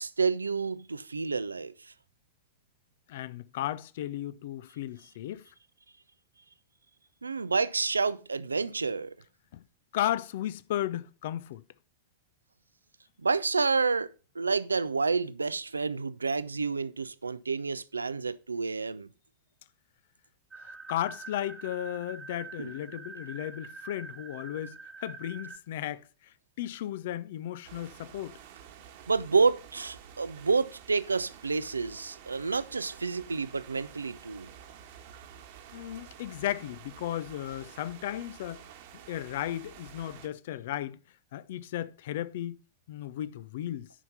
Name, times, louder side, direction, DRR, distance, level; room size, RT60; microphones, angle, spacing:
voice 1, 0.0-1.9 7.2-9.1 13.2-19.1 22.6-22.7 29.1-34.5, right 4 dB, 75° right, 0.5 m, -29 dB
voice 2, 3.1-5.4 9.5-9.6 9.9-11.6 20.6-28.4 35.7-38.6 39.1-41.0 41.3-42.6 42.9-43.9, left 12 dB, 55° left, 0.6 m, -35 dB
sound 1, 20.5-25.6, right 4 dB, 10° right, 1.0 m, -45 dB
sound 2, 27.6-40.3, right 9 dB, 50° right, 1.4 m, -50 dB
10.0 x 5.8 x 5.5 m
figure-of-eight pair, 90°, 0 cm